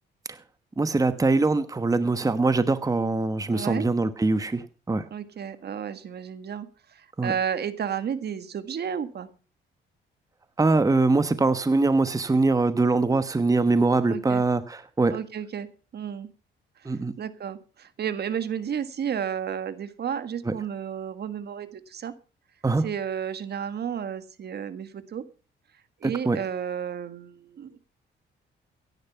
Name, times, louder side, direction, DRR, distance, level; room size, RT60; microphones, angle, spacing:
voice 1, 0.8-5.0 7.2-7.3 10.6-15.1 16.8-17.1 20.4-20.5 22.6-22.9 26.0-26.4, right 3 dB, 15° right, 12 dB, 1.1 m, -23 dB
voice 2, 3.5-3.9 5.1-9.3 14.0-14.4 15.1-16.3 16.8-22.1 22.8-25.2 26.0-27.8, right 8 dB, 55° right, 13 dB, 1.7 m, -32 dB
16.0 x 11.0 x 5.7 m, 0.36 s
cardioid pair, 90°, 20 cm